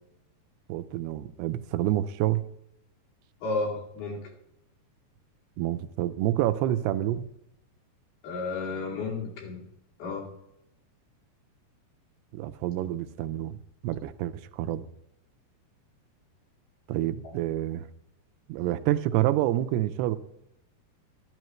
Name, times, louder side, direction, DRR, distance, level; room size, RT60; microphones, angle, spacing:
voice 1, 0.7-2.4 5.6-7.3 12.3-14.9 16.9-17.9 18.5-20.2, right 13 dB, 85° right, 10 dB, 2.6 m, -28 dB
voice 2, 3.4-4.3 8.2-9.6 10.0-10.3 17.2-17.3, left 3 dB, 70° left, -3 dB, 4.4 m, -32 dB
12.0 x 12.0 x 3.1 m, 0.82 s
omnidirectional pair, 4.6 m